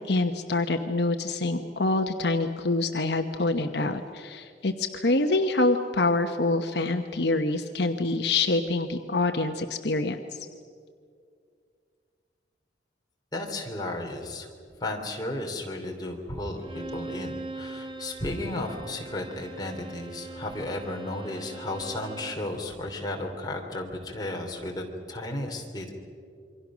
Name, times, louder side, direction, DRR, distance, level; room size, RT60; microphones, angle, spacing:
voice 1, 0.1-10.5, left 2 dB, 65° left, 6 dB, 1.1 m, -26 dB
voice 2, 13.3-14.5 14.8-25.9, left 1 dB, 20° left, 0 dB, 3.1 m, -34 dB
Bowed string instrument, 16.6-22.5, right 2 dB, 25° right, 1.7 m, -41 dB
27.5 x 24.0 x 6.3 m, 2.2 s
head